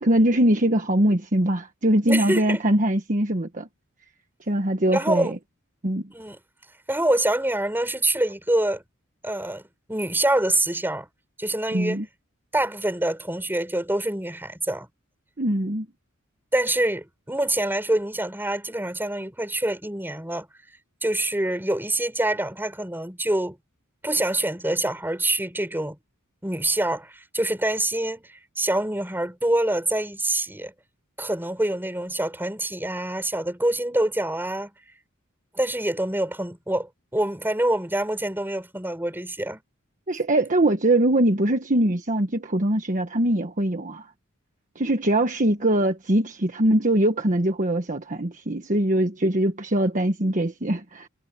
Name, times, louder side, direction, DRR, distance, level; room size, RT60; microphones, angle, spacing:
voice 1, 0.0-3.7 4.5-5.3 5.8-6.0 11.7-12.0 15.4-15.9 40.1-44.1 44.7-51.1, right 1 dB, 35° right, 1.4 m, -22 dB
voice 2, 2.1-2.6 4.9-5.3 6.1-6.4 6.9-8.8 9.2-9.6 9.9-11.1 11.4-12.0 12.5-14.9 16.5-20.5 21.0-23.6 24.0-26.0 26.4-30.7 31.2-34.7 35.5-39.6, right 1 dB, 10° right, 5.7 m, -25 dB
head